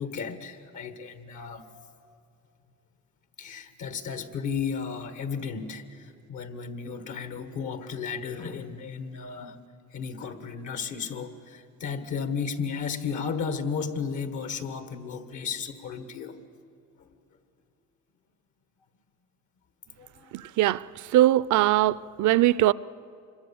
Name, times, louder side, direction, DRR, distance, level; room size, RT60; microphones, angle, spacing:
voice 1, 0.0-1.7 3.4-9.6 9.9-16.4 17.0-17.1 20.0-20.5, left 6 dB, 75° left, 1.6 m, -34 dB
voice 2, 21.1-22.7, right 14 dB, 75° right, 0.5 m, -20 dB
25.5 x 21.5 x 7.1 m
cardioid pair, 90°, 30 cm